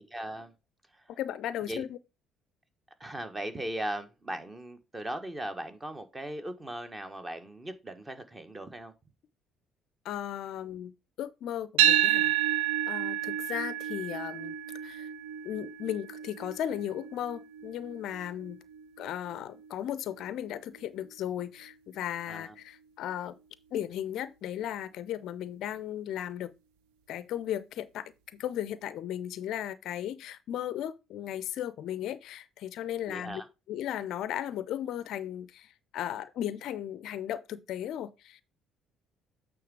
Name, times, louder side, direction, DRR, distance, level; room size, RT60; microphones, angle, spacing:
voice 1, 0.1-0.5 0.9-1.1 1.7-1.8 3.0-8.9 22.3-22.5 33.1-33.5, right 1 dB, 20° right, 1.3 m, -38 dB
voice 2, 1.1-2.0 10.0-10.9 11.2-12.3 12.9-14.6 14.8-15.1 15.4-18.6 19.0-23.3 23.7-26.5 27.1-33.4 33.7-38.4, left 11 dB, 60° left, 0.4 m, -36 dB
sound 1, 11.8-20.0, right 11 dB, 70° right, 0.5 m, -30 dB
8.6 x 3.6 x 4.8 m
figure-of-eight pair, 50°, 0 cm